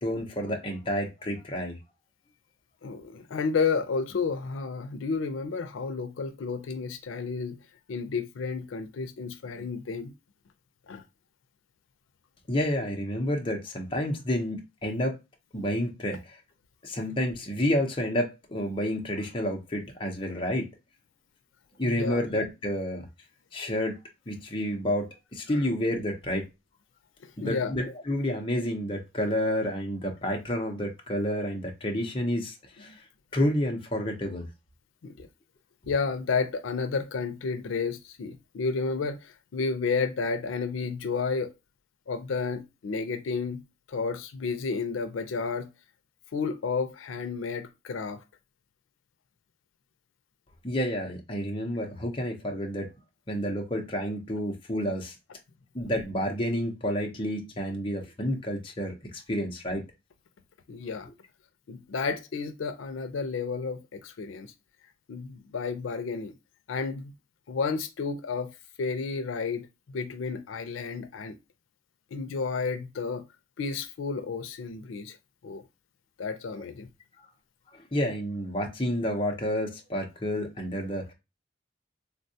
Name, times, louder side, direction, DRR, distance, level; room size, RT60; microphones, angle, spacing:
voice 1, 0.0-1.8 12.5-15.2 15.5-16.4 16.8-20.7 21.8-23.1 23.5-24.0 24.3-26.4 27.4-32.9 33.3-34.5 50.6-52.9 53.3-55.1 55.7-59.8 76.6-76.7 77.7-81.1, equal, 25° left, 0.6 m, -30 dB
voice 2, 2.8-7.6 7.9-10.1 10.9-11.0 22.0-22.2 27.2-27.7 35.0-35.3 35.9-41.5 42.1-43.6 43.9-45.7 46.3-48.2 60.7-61.1 61.7-64.5 65.1-66.3 66.7-67.1 67.5-68.5 68.8-71.4 72.1-73.2 73.6-75.2 75.4-75.6 76.2-76.9, left 4 dB, 90° left, 0.4 m, -31 dB
3.5 x 2.2 x 2.6 m
head